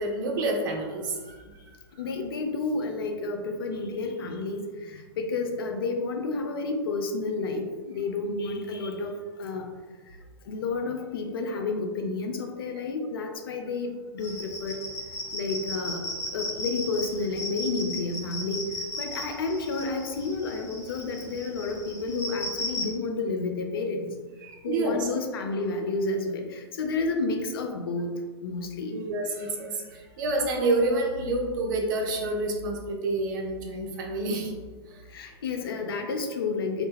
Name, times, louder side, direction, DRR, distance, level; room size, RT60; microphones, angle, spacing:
voice 1, 0.0-1.4 24.4-25.1 28.9-34.5, right 2 dB, 50° right, 2 dB, 0.5 m, -28 dB
voice 2, 2.0-9.1 9.4-9.7 10.5-14.8 15.3-16.0 16.3-18.6 19.0-24.1 24.6-28.1 28.4-28.9 35.1-36.9, left 3 dB, 60° left, 5 dB, 0.4 m, -30 dB
sound 1, 14.2-22.9, left 1 dB, 20° left, 0.6 m, -36 dB
2.1 x 2.0 x 3.1 m, 1.4 s
figure-of-eight pair, 100°, 14 cm